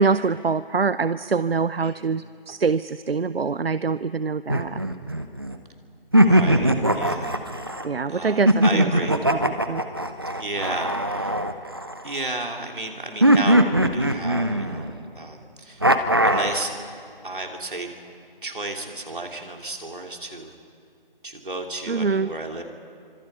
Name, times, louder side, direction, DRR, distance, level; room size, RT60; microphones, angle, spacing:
voice 1, 0.0-4.8 7.8-8.9 9.3-9.4 9.7-9.8 21.9-22.3, right 4 dB, 80° right, 15 dB, 0.6 m, -24 dB
voice 2, 1.8-2.1 6.2-7.4 8.1-9.2 10.4-11.4 12.0-15.9 16.2-16.7 17.2-17.9 18.4-20.5 21.2-22.6, right 2 dB, 60° right, 2 dB, 3.2 m, -33 dB
sound 1, 4.5-5.6 6.1-7.8 8.5-12.2 13.2-15.0 15.8-16.6, right 1 dB, 25° right, 0.6 m, -20 dB
29.0 x 25.5 x 5.7 m, 2.5 s
figure-of-eight pair, 160°, 29 cm